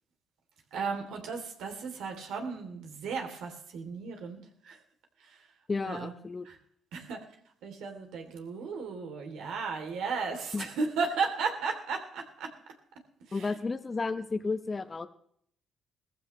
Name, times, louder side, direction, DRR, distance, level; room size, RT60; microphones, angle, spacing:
voice 1, 0.7-4.8 5.2-5.5 5.8-6.1 6.4-6.6 6.9-7.2 7.6-12.5 13.3-13.6, right 4 dB, 85° right, 3 dB, 3.1 m, -35 dB
voice 2, 5.7-6.4 10.5-10.6 13.3-15.1, left 4 dB, 30° left, 9 dB, 1.0 m, -32 dB
18.5 x 15.0 x 3.2 m, 0.66 s
cardioid pair, 90°, 0 cm